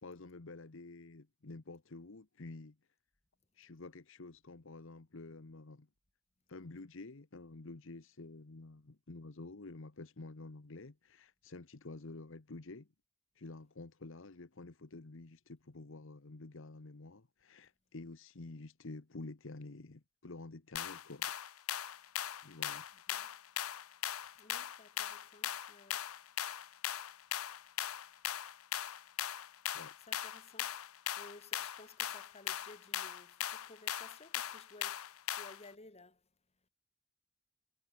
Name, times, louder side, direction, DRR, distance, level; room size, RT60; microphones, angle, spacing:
voice 1, 0.0-2.8 3.5-5.9 6.5-12.9 13.3-21.3 22.4-22.8 29.7-29.9, left 2 dB, 65° left, 1.1 m, -49 dB
sound 1, 20.8-35.7, left 11 dB, 90° left, 0.8 m, -39 dB
voice 2, 22.9-23.4 24.2-26.5 27.7-28.5 29.6-36.7, left 2 dB, 30° left, 3.8 m, -58 dB
head